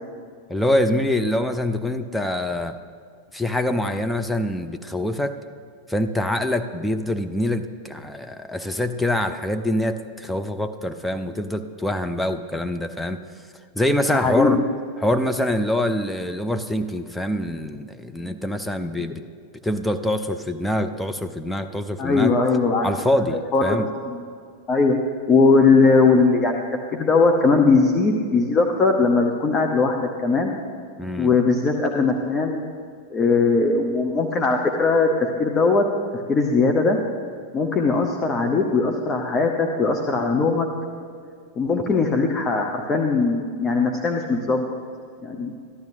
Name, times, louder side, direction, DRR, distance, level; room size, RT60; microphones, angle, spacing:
voice 1, 0.5-2.8 3.3-5.4 5.9-13.2 13.7-14.6 15.0-19.2 19.6-22.3 22.8-23.9 31.0-31.3, left 1 dB, ahead, 7 dB, 0.5 m, -25 dB
voice 2, 14.1-14.6 22.0-22.9 23.5-24.2 24.7-24.9 25.3-26.6 26.9-30.5 31.2-32.6 33.1-35.8 36.3-37.0 37.5-40.7 41.6-44.7 45.2-45.5, left 4 dB, 25° left, 3 dB, 0.8 m, -19 dB
14.0 x 12.0 x 2.7 m, 2.3 s
figure-of-eight pair, 90°, 0 cm